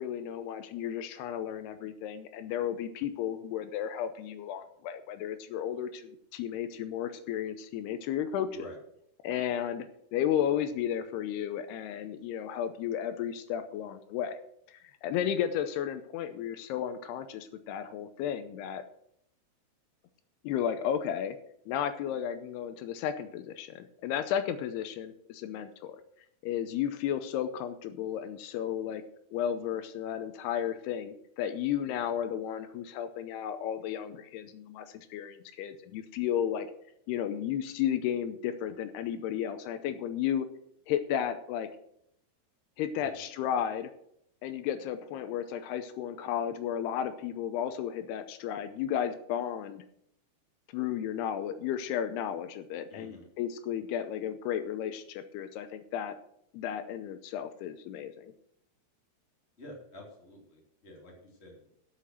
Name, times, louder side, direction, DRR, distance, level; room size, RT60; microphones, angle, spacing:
voice 1, 0.0-8.7 9.2-14.4 14.7-18.8 20.4-21.4 21.7-26.0 26.4-29.0 29.3-36.7 37.1-40.5 40.9-41.7 42.8-43.9 44.4-49.8 50.7-56.2 56.5-58.3, left 9 dB, 85° left, 10 dB, 2.7 m, -33 dB
voice 2, 43.0-43.3 52.9-53.2 59.6-61.7, left 1 dB, 20° left, -1 dB, 2.6 m, -49 dB
11.5 x 6.6 x 6.3 m, 0.73 s
omnidirectional pair, 4.7 m